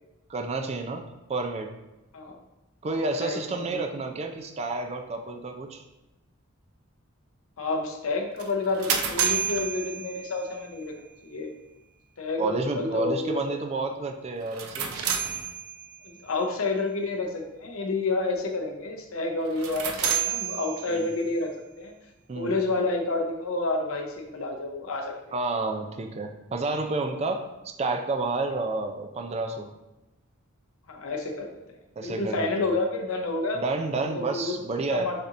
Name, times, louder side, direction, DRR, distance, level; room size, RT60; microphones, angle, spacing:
voice 1, 0.3-1.0 1.3-1.7 2.8-5.8 12.4-15.0 20.9-21.1 22.3-22.5 25.3-29.7 32.0-32.7 33.5-35.1, right 3 dB, 30° right, 4 dB, 0.4 m, -30 dB
voice 2, 2.8-3.8 7.6-10.9 11.2-11.5 12.2-13.4 16.0-21.5 21.8-21.9 22.3-25.1 30.9-31.5 32.0-33.6 34.1-34.5 34.9-35.1, left 3 dB, 75° left, 3 dB, 0.7 m, -29 dB
sound 1, 8.4-10.6 14.4-16.1 19.5-21.3, right 8 dB, 90° right, 0.5 m, -30 dB
6.6 x 2.8 x 2.5 m, 1.0 s
head